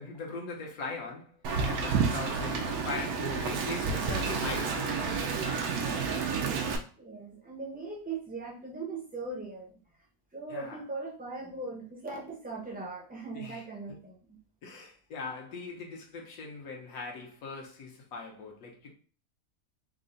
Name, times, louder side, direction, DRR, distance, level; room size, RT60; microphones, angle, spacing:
voice 1, 0.0-1.3 1.6-5.9 10.5-10.8 13.3-13.6 13.9-14.0 14.6-18.9, left 4 dB, 75° left, 1.3 m, -40 dB
Wind, 1.4-6.8, right 5 dB, 85° right, 1.1 m, -30 dB
voice 2, 5.8-6.2 7.0-9.8 10.3-14.4, right 3 dB, 10° right, 0.4 m, -40 dB
3.6 x 2.1 x 3.8 m
omnidirectional pair, 1.6 m